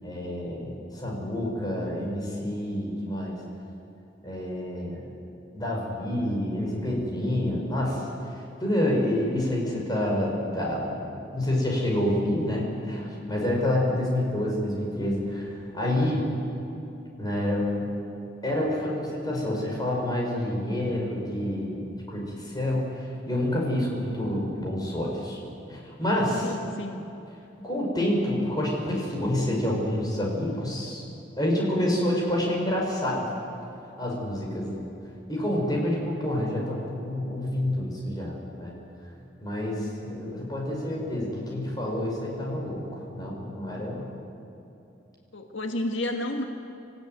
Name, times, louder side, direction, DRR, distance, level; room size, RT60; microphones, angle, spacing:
voice 1, 0.0-3.4 4.2-5.1 5.5-8.1 8.3-10.9 11.3-16.3 17.2-17.9 18.4-25.4 25.7-26.5 27.6-31.1 31.4-33.3 34.0-34.8 35.3-38.7 39.4-44.1, left 1 dB, 20° left, -2 dB, 5.5 m, -28 dB
voice 2, 26.4-27.0 45.3-46.4, left 1 dB, 85° left, 4 dB, 1.7 m, -31 dB
26.0 x 15.5 x 9.2 m, 2.9 s
head